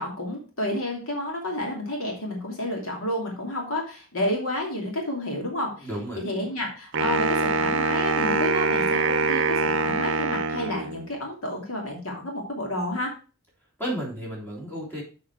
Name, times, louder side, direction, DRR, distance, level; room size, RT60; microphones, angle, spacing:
voice 1, 0.0-5.9 6.2-13.1, left 1 dB, 70° left, 0 dB, 2.7 m, -30 dB
voice 2, 5.8-6.2 13.8-15.0, right 1 dB, 10° left, -3 dB, 3.3 m, -32 dB
Wind instrument woodwind instrument, 6.9-11.2, right 3 dB, 60° right, 0.7 m, -24 dB
6.8 x 6.0 x 4.6 m, 0.34 s
head